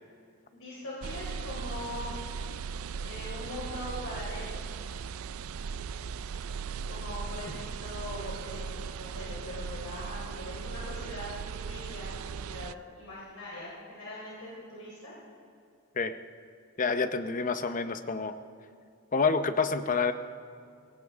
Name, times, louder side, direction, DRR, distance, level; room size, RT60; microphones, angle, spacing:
voice 1, 0.5-2.1 3.0-4.7 6.8-11.3 11.7-15.1, left 1 dB, 80° left, -6 dB, 3.7 m, -41 dB
sound 1, 1.0-12.7, right 6 dB, 75° right, 0.4 m, -38 dB
voice 2, 16.8-18.3 19.1-20.1, left 4 dB, 40° left, 10 dB, 0.7 m, -28 dB
22.0 x 17.5 x 3.6 m, 2.4 s
head